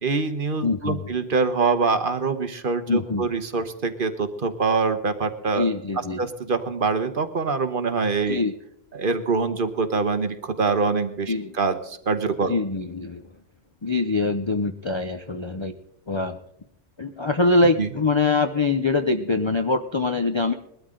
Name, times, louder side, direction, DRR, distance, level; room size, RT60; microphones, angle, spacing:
voice 1, 0.0-5.7 6.2-8.4 8.9-12.5 17.8-17.9, right 4 dB, 50° right, 9 dB, 1.2 m, -24 dB
voice 2, 0.6-1.0 2.9-3.3 5.5-6.2 8.3-8.5 11.3-11.5 12.5-13.3 13.8-15.7 16.1-16.4 17.0-20.5, left 3 dB, 35° left, 8 dB, 0.5 m, -23 dB
21.0 x 12.5 x 3.8 m, 0.73 s
omnidirectional pair, 1.2 m